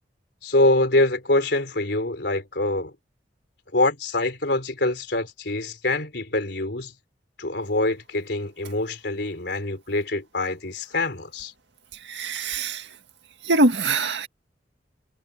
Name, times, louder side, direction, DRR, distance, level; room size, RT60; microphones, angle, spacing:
voice 1, 0.4-2.9 3.7-6.9 7.4-11.5, left 2 dB, 65° left, 4.2 m, -24 dB
voice 2, 12.0-12.9 13.4-14.3, right 2 dB, 70° right, 2.0 m, -23 dB
head